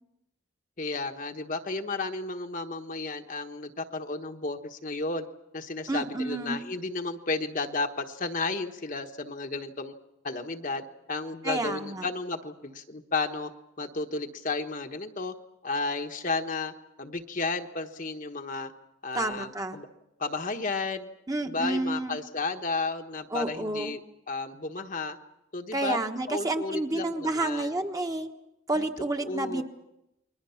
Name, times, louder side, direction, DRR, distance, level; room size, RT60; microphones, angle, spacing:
voice 1, 0.8-5.2 5.5-9.9 10.2-13.5 13.8-15.3 15.6-16.7 17.0-18.7 19.0-19.9 20.2-21.1 21.4-24.0 24.3-25.2 25.5-26.0 26.3-27.8 28.8-28.9 29.2-29.6, left 3 dB, 40° left, 5 dB, 1.2 m, -33 dB
voice 2, 5.9-6.6 11.4-12.1 19.1-19.8 21.3-22.2 23.3-23.9 25.7-28.3 28.7-29.6, right 2 dB, 15° right, 4 dB, 1.3 m, -30 dB
29.5 x 22.5 x 5.8 m, 0.89 s
head